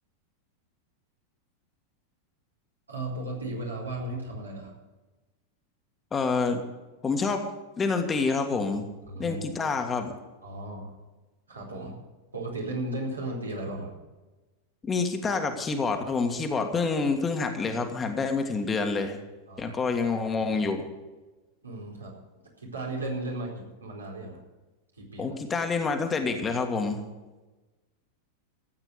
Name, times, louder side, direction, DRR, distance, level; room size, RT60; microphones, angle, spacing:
voice 1, 2.9-4.7 9.0-9.4 10.4-11.0 11.5-12.0 12.3-13.9 19.5-19.8 21.6-22.1 22.6-24.4 24.9-25.4, right 2 dB, 75° right, -2 dB, 4.5 m, -35 dB
voice 2, 6.1-6.6 7.0-7.4 7.8-8.8 9.2-10.1 14.9-19.2 19.6-20.9 25.2-27.0, left 4 dB, 20° left, 5 dB, 1.7 m, -27 dB
14.5 x 8.8 x 8.1 m, 1.2 s
figure-of-eight pair, 90°, 0 cm